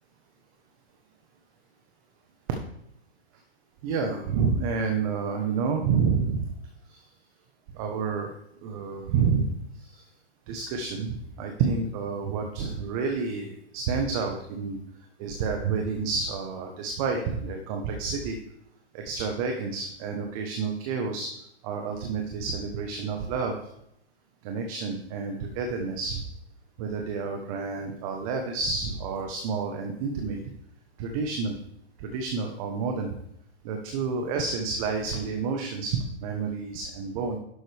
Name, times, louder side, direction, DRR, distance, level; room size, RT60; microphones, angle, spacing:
voice 1, 3.8-6.5 6.9-7.0 7.7-8.3 8.6-9.5 9.8-10.0 10.5-14.8 15.2-18.4 18.9-21.3 21.6-23.6 24.4-26.2 26.8-30.4 31.0-31.6 32.0-33.2 33.6-37.4, right 5 dB, 30° right, 3 dB, 1.2 m, -29 dB
11.5 x 7.6 x 3.5 m, 0.77 s
hypercardioid pair, 145°, 34 cm